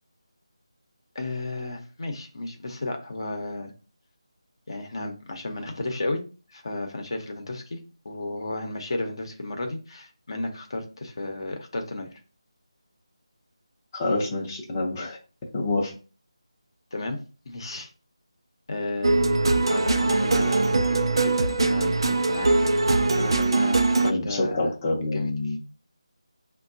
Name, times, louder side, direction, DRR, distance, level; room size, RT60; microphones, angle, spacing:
voice 1, 1.1-3.7 4.7-6.2 6.5-12.1 16.9-17.2 17.5-17.9 18.7-19.2 19.7-22.5 23.2-24.7 25.1-25.3, left 2 dB, 55° left, 4 dB, 0.8 m, -33 dB
voice 2, 13.9-15.2 15.5-15.9 24.0-25.6, left 2 dB, 20° left, -4 dB, 0.6 m, -27 dB
sound 1, 19.0-24.1, right 2 dB, 55° right, 0.4 m, -22 dB
5.6 x 2.2 x 2.6 m, 0.35 s
figure-of-eight pair, 165°, 3 cm